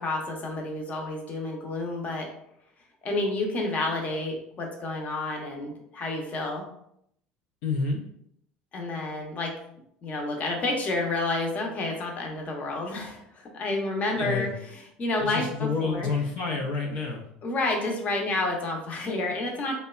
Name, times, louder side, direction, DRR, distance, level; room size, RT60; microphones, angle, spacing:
voice 1, 0.0-2.3 3.0-6.6 8.7-9.5 10.0-16.1 17.4-19.7, left 2 dB, 40° left, 1 dB, 0.7 m, -30 dB
voice 2, 7.6-8.0 14.2-14.5 15.2-17.2, left 4 dB, 75° left, 0 dB, 0.4 m, -29 dB
2.8 x 2.1 x 2.3 m, 0.74 s
supercardioid pair, 90°, 4 cm